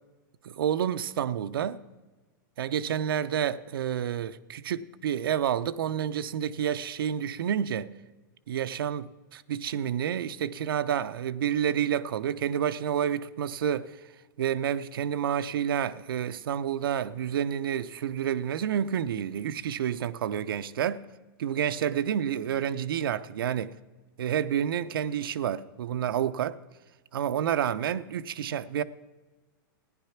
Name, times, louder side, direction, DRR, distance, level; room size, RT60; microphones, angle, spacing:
voice 1, 0.4-1.8 2.6-7.9 8.5-14.0 14.4-21.0 21.4-23.7 24.2-26.6 27.1-28.8, right 9 dB, 90° right, 0.7 m, -29 dB
15.0 x 10.0 x 5.8 m
supercardioid pair, 155°, 11 cm